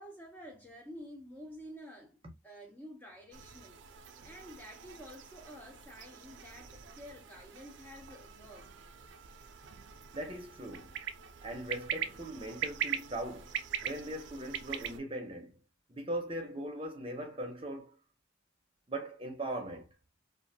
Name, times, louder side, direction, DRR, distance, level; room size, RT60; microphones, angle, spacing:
voice 1, 0.0-3.8 4.2-8.7, equal, 10° left, 0.4 m, -50 dB
sound 1, 3.3-15.0, right 8 dB, 60° right, 0.3 m, -42 dB
voice 2, 10.1-10.9 11.4-13.6 13.8-15.6 15.9-18.0 18.9-19.9, right 1 dB, 25° right, 0.6 m, -40 dB
2.4 x 2.2 x 2.6 m
head